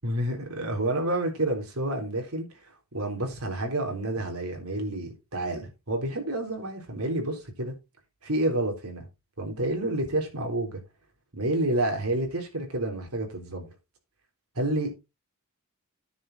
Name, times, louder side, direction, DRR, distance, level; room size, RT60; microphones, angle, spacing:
voice 1, 0.0-2.5 2.9-7.7 8.2-9.1 9.4-10.8 11.3-13.7 14.6-15.0, right 1 dB, 85° right, 3.6 m, -29 dB
10.0 x 6.7 x 4.0 m
head